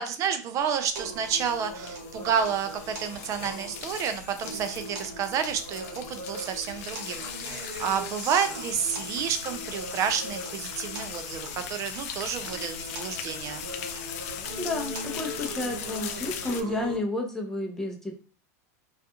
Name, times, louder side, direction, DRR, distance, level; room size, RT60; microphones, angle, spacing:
voice 1, 0.0-13.7, right 7 dB, 40° right, 9 dB, 0.4 m, -30 dB
sound 1, 0.9-16.6, left 8 dB, 65° left, 0.4 m, -39 dB
sound 2, 1.0-17.0, right 1 dB, 65° right, 1.0 m, -40 dB
voice 2, 14.6-18.2, left 2 dB, 5° left, 1 dB, 0.6 m, -31 dB
2.3 x 2.3 x 2.7 m, 0.38 s
hypercardioid pair, 115°, 9 cm